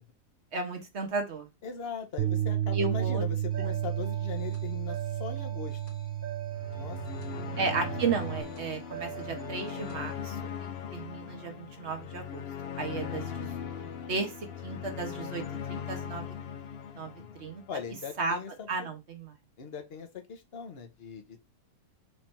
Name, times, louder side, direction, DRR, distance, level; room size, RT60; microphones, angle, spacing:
voice 1, 0.5-1.5 2.7-3.2 7.6-10.3 10.9-12.4 12.8-13.5 14.1-14.3 14.6-15.4 15.7-16.2 17.0-17.1 17.4-17.6 18.2-18.4 18.7-19.3, right 4 dB, 50° right, 1.3 m, -33 dB
voice 2, 1.6-5.8 6.7-7.0 7.4-7.6 17.1-17.3 17.7-18.9 19.6-21.4, left 7 dB, 45° left, 1.0 m, -40 dB
Bass guitar, 2.2-8.4, right 12 dB, 80° right, 0.6 m, -32 dB
sound 1, 3.5-10.1, right 10 dB, 30° left, 1.3 m, -44 dB
sound 2, 6.5-17.8, left 8 dB, 65° left, 0.6 m, -39 dB
4.5 x 2.7 x 4.3 m
omnidirectional pair, 1.7 m